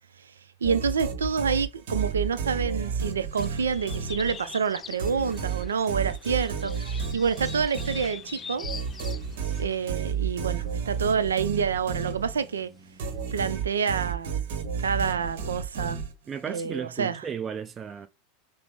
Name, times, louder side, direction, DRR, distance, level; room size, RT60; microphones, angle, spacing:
sound 1, 0.6-4.6 5.0-12.6 13.0-16.5, right 6 dB, 65° right, 1.0 m, -32 dB
voice 1, 0.6-8.7 9.6-12.7 13.3-14.3 14.8-16.0 16.5-17.2, right 6 dB, 85° right, 0.4 m, -28 dB
sound 2, 3.3-9.8, left 6 dB, 25° left, 0.3 m, -43 dB
sound 3, 8.1-13.5, right 2 dB, 5° right, 1.1 m, -53 dB
voice 2, 16.3-18.1, right 7 dB, 25° right, 0.6 m, -34 dB
5.8 x 2.0 x 3.6 m
hypercardioid pair, 90°, 0 cm